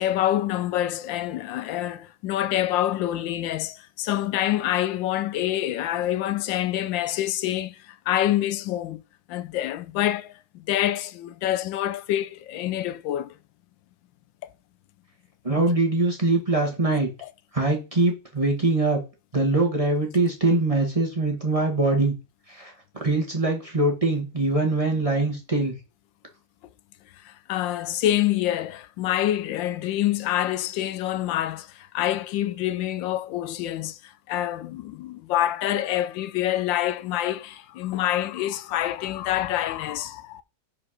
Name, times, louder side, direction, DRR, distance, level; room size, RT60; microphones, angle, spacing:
voice 1, 0.0-9.0 9.3-13.3 17.2-17.3 27.2-40.4, left 13 dB, 85° left, 1.3 m, -26 dB
voice 2, 15.4-17.1 17.5-19.0 19.3-22.1 22.5-25.8, right 2 dB, 20° right, 1.7 m, -23 dB
5.1 x 4.8 x 6.3 m
omnidirectional pair, 2.0 m